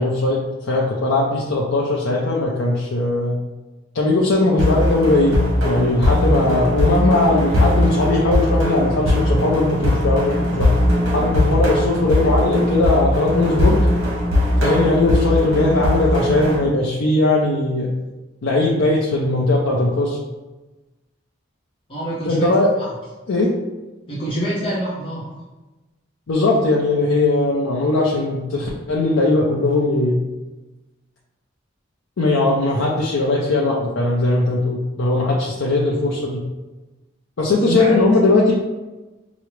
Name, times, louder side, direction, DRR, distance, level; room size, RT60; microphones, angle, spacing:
voice 1, 0.0-3.4 3.9-10.7 11.1-13.8 14.6-17.9 18.4-20.2 22.2-22.7 23.3-23.5 26.3-30.2 32.2-36.4 37.4-38.5, left 2 dB, 75° left, -3 dB, 0.5 m, -19 dB
sound 1, 4.6-16.6, left 1 dB, 75° right, 1.0 m, -19 dB
voice 2, 21.9-22.5 22.8-22.9 24.1-25.3 37.7-37.9, right 1 dB, 25° left, -8 dB, 0.7 m, -25 dB
4.7 x 2.0 x 3.0 m, 1.1 s
head